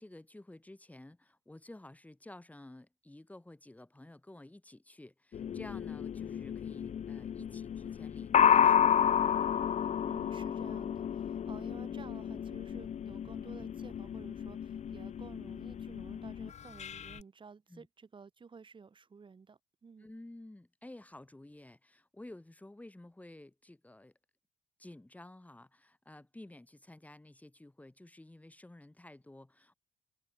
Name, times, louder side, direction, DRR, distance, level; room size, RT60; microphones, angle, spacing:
voice 1, 0.0-9.1 17.7-17.9 20.0-24.1 24.8-29.7, left 1 dB, 10° left, 5.1 m, -52 dB
sound 1, 5.3-17.2, left 8 dB, 40° left, 1.1 m, -31 dB
voice 2, 10.1-20.1, right 5 dB, 30° right, 5.7 m, -53 dB
cardioid pair, 110°, 17 cm